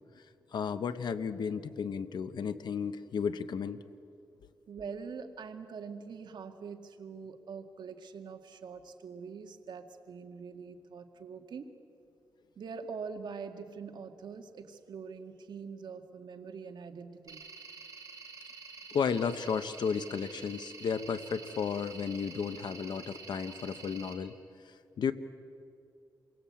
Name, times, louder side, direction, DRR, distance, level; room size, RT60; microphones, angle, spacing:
voice 1, 0.5-3.8 18.9-24.3 25.0-25.1, left 6 dB, 70° left, 11 dB, 1.0 m, -33 dB
voice 2, 4.7-11.7 12.6-17.4, right 5 dB, 75° right, 5 dB, 2.0 m, -44 dB
sound 1, 17.3-24.1, right 4 dB, 50° right, 4.7 m, -48 dB
28.5 x 23.0 x 8.7 m, 2.5 s
cardioid pair, 100°, 8 cm